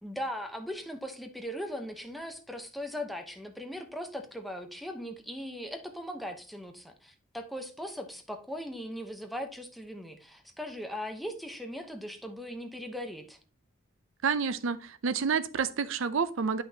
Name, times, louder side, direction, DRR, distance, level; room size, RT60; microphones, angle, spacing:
voice 1, 0.0-13.4, equal, ahead, 4 dB, 0.8 m, -39 dB
voice 2, 14.2-16.6, right 5 dB, 65° right, 14 dB, 0.5 m, -29 dB
9.9 x 5.8 x 2.8 m, 0.37 s
head